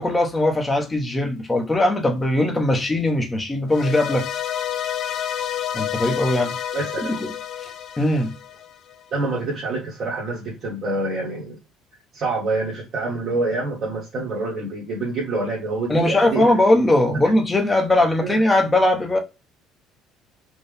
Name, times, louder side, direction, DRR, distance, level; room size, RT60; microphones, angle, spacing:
voice 1, 0.0-4.2 5.7-6.6 7.2-7.3 7.6-7.7 8.0-8.3 15.9-19.2, left 1 dB, 10° left, 0.8 m, -20 dB
sound 1, 3.7-9.0, left 10 dB, 45° left, 0.3 m, -29 dB
voice 2, 6.7-7.1 9.1-11.6 12.1-16.5 17.1-17.2 18.2-18.3, right 2 dB, 40° right, 1.5 m, -26 dB
4.4 x 2.2 x 3.3 m
cardioid pair, 145°, 0 cm